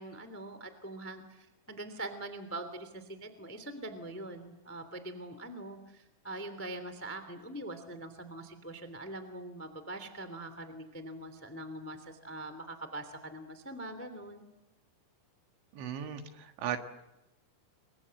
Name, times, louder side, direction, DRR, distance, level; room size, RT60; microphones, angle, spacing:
voice 1, 0.0-14.4, right 2 dB, 5° left, 10 dB, 1.1 m, -43 dB
voice 2, 15.7-16.9, right 9 dB, 70° right, 6 dB, 3.9 m, -37 dB
30.0 x 24.5 x 7.8 m, 0.94 s
omnidirectional pair, 5.6 m